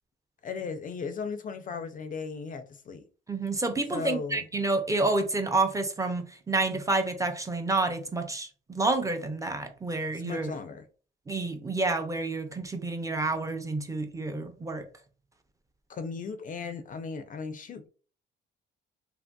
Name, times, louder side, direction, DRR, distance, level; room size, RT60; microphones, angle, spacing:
voice 1, 0.4-3.0 3.9-4.5 10.1-10.8 15.9-17.9, left 5 dB, 45° left, 0.4 m, -36 dB
voice 2, 3.3-10.5 11.3-14.9, right 2 dB, 15° right, 0.4 m, -29 dB
2.8 x 2.6 x 2.2 m
cardioid pair, 90°, 20 cm